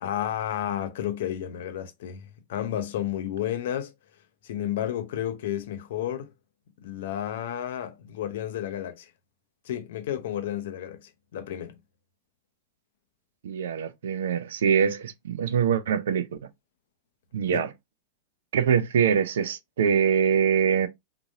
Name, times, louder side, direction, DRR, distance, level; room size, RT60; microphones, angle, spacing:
voice 1, 0.0-3.9 4.4-6.3 6.8-9.1 9.7-11.8 17.5-17.7, left 11 dB, 55° left, 0.5 m, -32 dB
voice 2, 13.4-16.3 17.3-17.7 18.5-20.9, right 7 dB, 60° right, 0.4 m, -23 dB
3.6 x 2.5 x 2.6 m
figure-of-eight pair, 90°, 0 cm